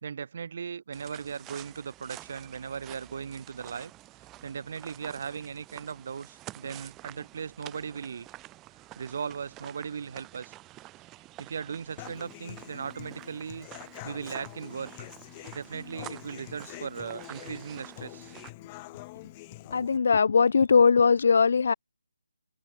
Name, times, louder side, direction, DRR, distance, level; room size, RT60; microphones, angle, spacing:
voice 1, 0.0-3.9 4.4-8.3 9.0-10.5 11.4-13.7 14.0-15.1 15.5-18.3, right 6 dB, 45° right, 1.7 m, -38 dB
sound 1, 0.9-18.5, right 17 dB, 15° right, 2.8 m, -49 dB
Human voice / Acoustic guitar, 12.0-20.0, left 22 dB, 20° left, 2.5 m, -45 dB
voice 2, 19.7-21.7, left 5 dB, 55° left, 0.5 m, -20 dB
figure-of-eight pair, 155°, 0 cm